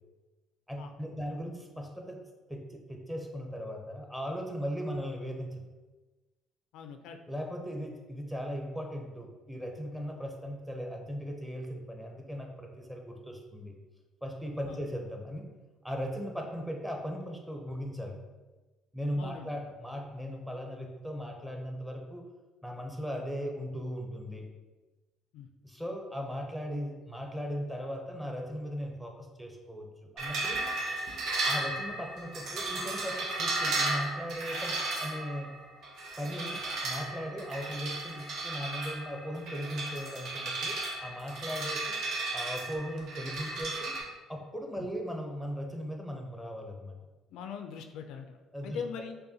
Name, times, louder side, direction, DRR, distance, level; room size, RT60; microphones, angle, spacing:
voice 1, 0.7-2.2 2.5-5.6 7.3-13.8 14.2-15.5 15.8-18.2 18.9-22.2 22.6-24.5 25.6-30.6 31.4-35.6 36.2-42.0 42.3-44.0 44.3-47.0 48.5-48.8, equal, 5° right, 2 dB, 0.6 m, -38 dB
voice 2, 6.7-7.2 14.7-14.8 19.2-19.7 25.3-25.5 44.8-44.9 47.3-48.4 48.6-49.1, left 7 dB, 80° left, 6 dB, 0.3 m, -41 dB
sound 1, 30.2-44.0, right 2 dB, 70° right, 0.8 m, -35 dB
5.3 x 2.1 x 2.8 m, 1.2 s
cardioid pair, 100°, 0 cm